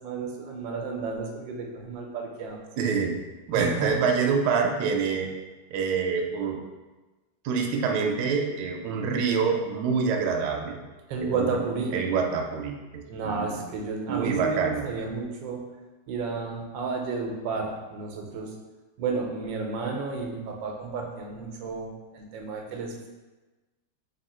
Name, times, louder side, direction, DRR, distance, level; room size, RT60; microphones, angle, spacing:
voice 1, 0.0-2.6 3.6-4.0 11.1-12.0 13.1-15.6 16.1-18.5 19.0-23.1, right 4 dB, 90° right, 2 dB, 1.3 m, -32 dB
voice 2, 2.8-3.2 3.5-5.3 5.7-6.6 7.4-10.8 11.2-11.5 11.9-13.5 14.1-14.9, right 5 dB, 75° right, 2 dB, 1.1 m, -26 dB
3.6 x 2.7 x 4.1 m, 1.2 s
omnidirectional pair, 2.0 m